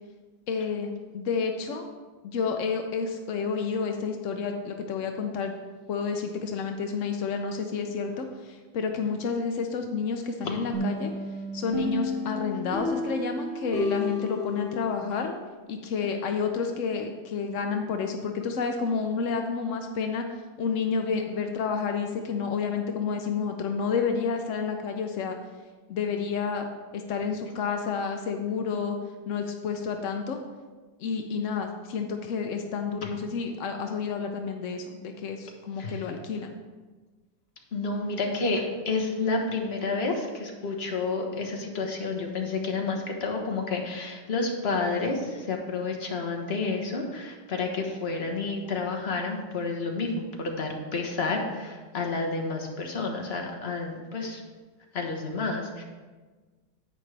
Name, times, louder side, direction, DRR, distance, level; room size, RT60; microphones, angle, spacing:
voice 1, 0.5-1.9 2.2-5.5 5.9-11.1 11.5-15.3 15.7-20.3 20.6-25.4 25.9-26.7 26.9-29.0 29.3-30.4 31.0-36.6, left 5 dB, 75° left, 4 dB, 0.7 m, -30 dB
sound 1, 10.7-15.4, left 1 dB, 45° right, 2.7 m, -32 dB
voice 2, 37.7-54.4 54.9-55.8, left 3 dB, 35° left, 2 dB, 1.2 m, -30 dB
10.5 x 8.7 x 3.4 m, 1.4 s
omnidirectional pair, 2.2 m